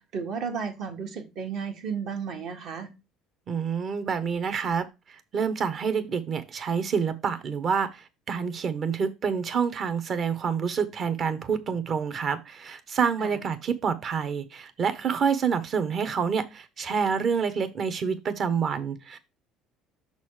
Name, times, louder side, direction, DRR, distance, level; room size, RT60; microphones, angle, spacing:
voice 1, 0.0-2.9 13.2-13.3, right 6 dB, 65° right, 3 dB, 1.7 m, -33 dB
voice 2, 3.5-19.2, right 6 dB, 45° right, 10 dB, 1.1 m, -28 dB
6.4 x 4.1 x 4.9 m, 0.25 s
supercardioid pair, 100°, 0 cm